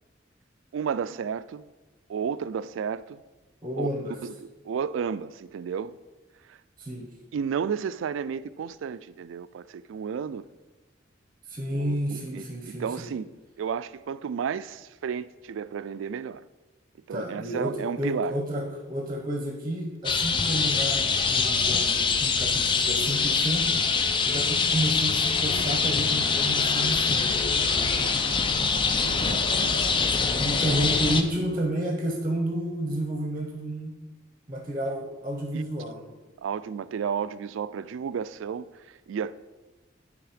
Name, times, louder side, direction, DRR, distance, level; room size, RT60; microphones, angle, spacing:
voice 1, 0.7-1.7 2.1-3.2 3.8-3.9 4.2-6.0 6.5-6.6 7.3-10.4 11.7-13.3 13.6-16.4 17.1-18.4 28.0-28.2 29.0-29.8 30.7-30.9 35.5-35.6 36.4-39.4, right 7 dB, 80° right, 0.3 m, -32 dB
voice 2, 3.6-4.2 6.8-7.1 11.5-13.1 17.1-23.7 24.3-28.0 30.4-34.0 34.5-36.0, right 1 dB, 25° right, 0.9 m, -31 dB
sound 1, 20.0-31.2, left 5 dB, 25° left, 0.4 m, -24 dB
9.5 x 3.5 x 5.0 m
head